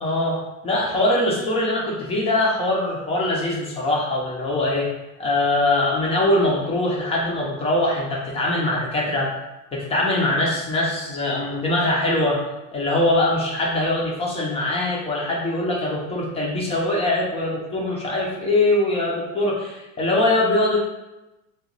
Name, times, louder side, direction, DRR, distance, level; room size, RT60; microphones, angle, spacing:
voice 1, 0.0-4.9 5.2-9.3 9.7-12.4 12.7-20.8, left 1 dB, 15° left, -3 dB, 0.4 m, -22 dB
2.9 x 2.2 x 3.8 m, 0.99 s
supercardioid pair, 125°, 48 cm